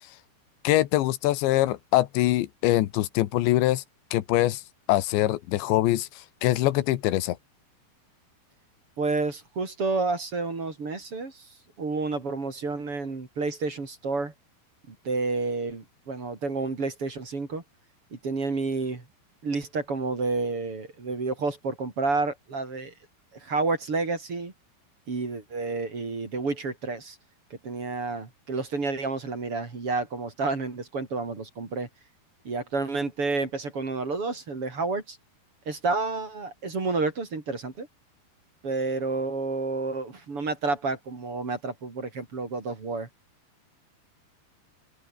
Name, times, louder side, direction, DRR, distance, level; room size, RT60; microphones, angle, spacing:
voice 1, 0.7-3.8 4.1-4.6 4.9-7.4, left 15 dB, 90° left, 3.5 m, -23 dB
voice 2, 9.0-11.5 11.8-14.3 14.9-17.6 18.1-19.0 19.4-22.9 23.3-24.5 25.1-27.2 27.6-31.9 32.4-35.2 35.7-37.9 38.6-43.1, right 3 dB, 35° right, 4.2 m, -30 dB
open air
omnidirectional pair, 5.1 m